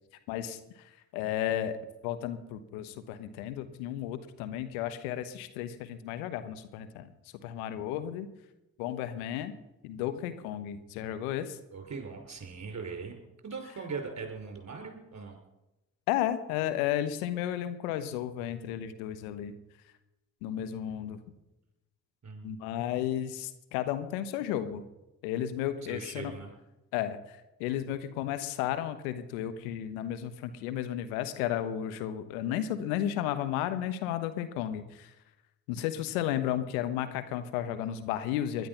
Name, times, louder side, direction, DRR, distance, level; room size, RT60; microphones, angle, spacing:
voice 1, 0.3-0.6 1.1-1.8 2.0-7.1 7.4-8.3 8.8-9.5 9.8-11.6 16.1-19.5 20.4-21.2 22.4-24.8 25.2-26.3 26.9-27.2 27.6-35.1 35.7-38.7, left 11 dB, 85° left, 11 dB, 1.2 m, -33 dB
voice 2, 11.7-13.2 13.4-15.4 22.2-22.6 25.9-26.5, right 5 dB, 40° right, 4 dB, 5.5 m, -40 dB
20.0 x 12.0 x 5.8 m, 0.97 s
hypercardioid pair, 50°, 42 cm